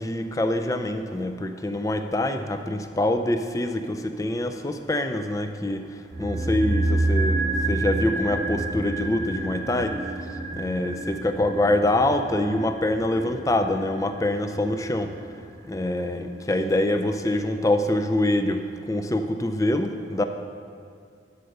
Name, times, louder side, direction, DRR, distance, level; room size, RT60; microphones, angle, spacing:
voice 1, 0.0-5.8 6.2-9.9 10.5-15.1 15.7-18.6 18.9-20.2, left 1 dB, 20° left, 7 dB, 0.5 m, -25 dB
sound 1, 6.1-16.4 16.6-16.7, right 2 dB, 45° right, 0.9 m, -29 dB
12.0 x 5.4 x 6.5 m, 2.2 s
head